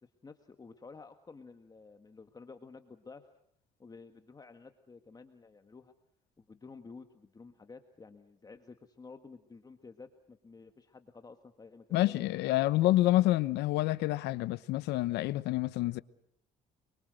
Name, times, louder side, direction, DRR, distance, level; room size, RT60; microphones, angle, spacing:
voice 1, 0.0-3.3 3.8-5.9 6.4-12.2, left 4 dB, 20° left, 1.8 m, -52 dB
voice 2, 11.9-16.0, left 16 dB, 85° left, 1.1 m, -28 dB
28.0 x 24.0 x 6.5 m
cardioid pair, 110°, 17 cm